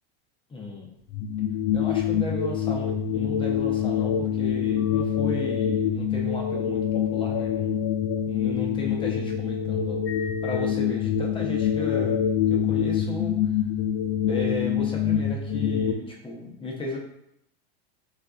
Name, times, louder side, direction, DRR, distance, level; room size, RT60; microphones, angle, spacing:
voice 1, 0.5-0.9 1.7-7.9 8.3-10.0 10.4-12.2 12.5-13.4 14.3-17.0, left 2 dB, 15° left, -1 dB, 0.6 m, -35 dB
sound 1, 1.1-15.9, left 8 dB, 80° left, 0.5 m, -25 dB
4.0 x 2.4 x 2.3 m, 0.77 s
supercardioid pair, 120°, 31 cm